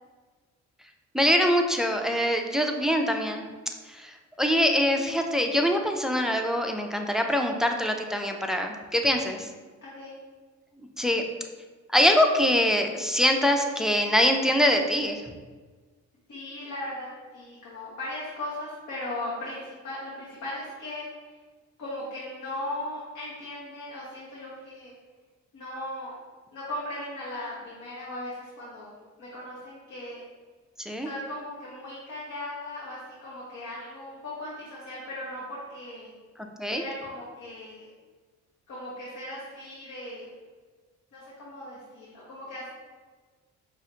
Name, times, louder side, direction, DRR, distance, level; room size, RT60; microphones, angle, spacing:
voice 1, 1.1-3.5 3.9-4.1 4.4-9.5 11.0-11.2 11.9-15.2 30.9-31.1 36.6-36.8, equal, ahead, 3 dB, 0.3 m, -24 dB
voice 2, 9.8-10.2 16.3-21.3 21.8-24.9 25.5-26.2 26.5-30.2 31.0-36.1 36.7-37.9 38.7-40.3 41.1-42.7, left 1 dB, 65° left, -7 dB, 1.1 m, -38 dB
5.4 x 2.5 x 2.7 m, 1.4 s
cardioid pair, 90°, 30 cm